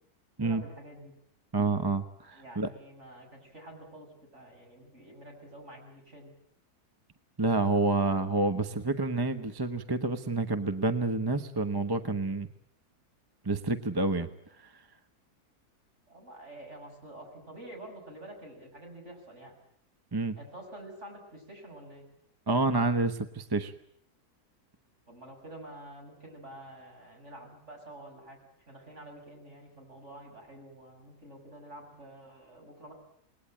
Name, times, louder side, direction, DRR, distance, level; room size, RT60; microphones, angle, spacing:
voice 1, 0.4-1.1 2.4-4.1 4.3-6.3 16.1-19.5 20.4-22.0 25.1-28.4 28.7-32.9, right 1 dB, 45° right, 2 dB, 7.4 m, -48 dB
voice 2, 1.5-2.7 7.4-12.5 13.4-14.3 14.6-14.8 20.1-20.4 22.5-23.7, right 3 dB, 15° right, 9 dB, 0.9 m, -28 dB
28.0 x 20.5 x 8.9 m, 0.71 s
omnidirectional pair, 1.7 m